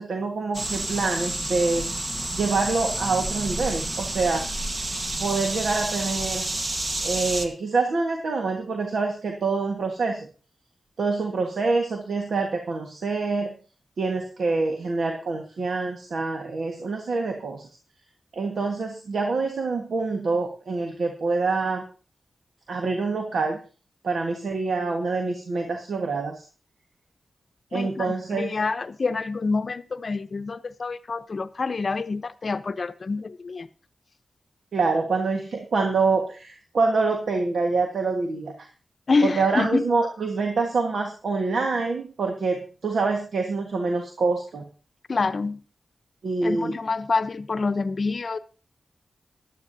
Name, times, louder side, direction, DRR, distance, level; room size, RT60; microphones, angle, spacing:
voice 1, 0.0-1.9 2.3-4.4 5.2-6.5 7.0-10.3 11.0-13.5 14.0-17.7 18.3-21.8 22.7-23.6 24.0-26.4 27.7-28.6 34.7-38.7 39.2-44.6 46.2-46.7, right 3 dB, 80° right, 1.5 m, -26 dB
sound 1, 0.5-7.5, right 1 dB, 45° right, 1.4 m, -29 dB
voice 2, 27.7-33.7 39.1-39.8 45.1-45.6 46.4-48.4, left 4 dB, 55° left, 0.7 m, -27 dB
16.5 x 11.5 x 2.7 m
cardioid pair, 65°, 0 cm